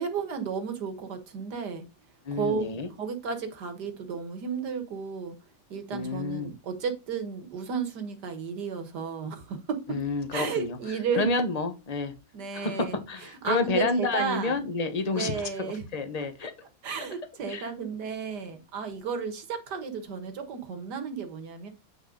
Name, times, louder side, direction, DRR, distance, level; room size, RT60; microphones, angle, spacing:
voice 1, 0.0-1.8 2.3-2.7 3.0-5.4 5.7-10.0 10.3-11.3 12.3-13.0 13.4-14.6 15.1-15.9 16.2-16.3 16.8-21.7, right 5 dB, 55° right, 1.8 m, -33 dB
voice 2, 2.2-2.9 5.9-6.5 9.9-10.8 11.2-12.1 12.5-15.7 15.9-16.5 17.5-17.7, left 3 dB, 30° left, 0.7 m, -29 dB
8.6 x 4.2 x 3.8 m
omnidirectional pair, 2.3 m